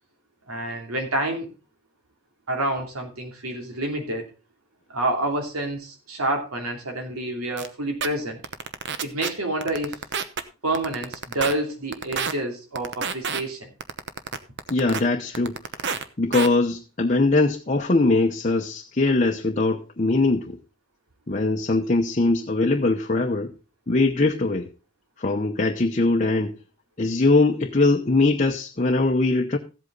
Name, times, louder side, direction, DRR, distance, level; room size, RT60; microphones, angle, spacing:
voice 1, 0.5-1.5 2.5-4.3 4.9-8.4 9.0-10.0 10.6-13.7, right 1 dB, 90° right, 3 dB, 2.9 m, -28 dB
sound 1, 7.6-7.7 8.0-8.1 8.4-9.3 9.6-10.4 10.7-11.5 11.9-12.3 12.8-13.4 13.8-15.0 15.3-16.0 16.3-16.5, right 6 dB, 55° right, 0.9 m, -28 dB
voice 2, 14.7-15.6 16.2-20.6 21.3-23.5 23.9-24.7 25.2-26.6 27.0-29.6, left 2 dB, 35° left, 2 dB, 0.8 m, -21 dB
14.5 x 8.2 x 3.9 m, 0.31 s
head